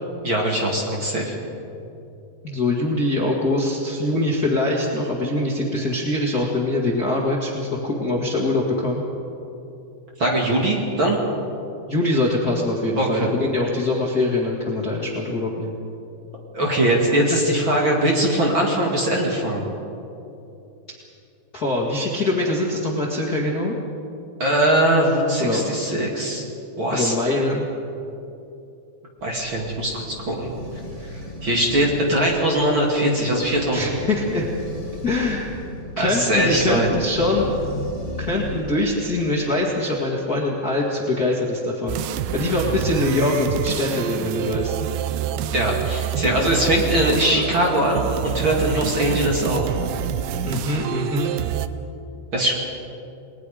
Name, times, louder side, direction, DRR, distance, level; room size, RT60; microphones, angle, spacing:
voice 1, 0.2-1.4 10.2-11.2 13.0-13.3 16.5-19.6 24.4-26.4 26.8-27.1 29.2-33.9 36.0-36.9 45.5-49.8 52.3-52.5, right 1 dB, 35° right, -1 dB, 2.8 m, -21 dB
voice 2, 2.4-9.0 11.9-15.8 21.5-23.8 25.4-26.0 26.9-27.7 33.7-34.5 35.0-35.5 36.0-37.5 38.2-42.0 42.3-44.8 50.4-51.3, left 2 dB, 35° left, -3 dB, 1.8 m, -23 dB
sound 1, 29.2-38.9, equal, 10° right, 5.2 m, -36 dB
sound 2, 41.9-51.7, right 10 dB, 75° right, 2.3 m, -27 dB
29.5 x 20.5 x 5.0 m, 2.8 s
omnidirectional pair, 4.3 m